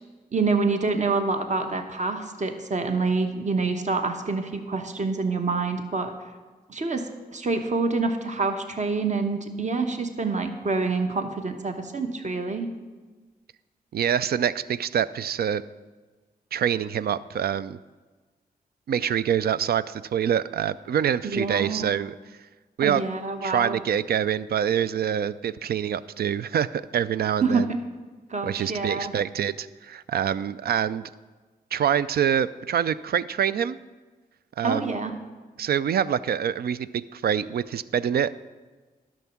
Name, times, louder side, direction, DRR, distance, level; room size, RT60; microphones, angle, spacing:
voice 1, 0.3-6.1 6.7-7.0 7.3-12.7 21.2-21.8 22.8-23.8 27.4-27.8 28.3-29.1 34.6-35.1, right 4 dB, 45° right, 6 dB, 1.1 m, -26 dB
voice 2, 13.9-15.6 16.5-17.8 18.9-22.1 22.8-23.0 23.4-27.7 28.4-31.1 31.7-33.8 34.6-35.0 35.6-38.4, right 9 dB, 65° right, 16 dB, 0.4 m, -25 dB
11.0 x 6.2 x 5.8 m, 1.3 s
cardioid pair, 50°, 17 cm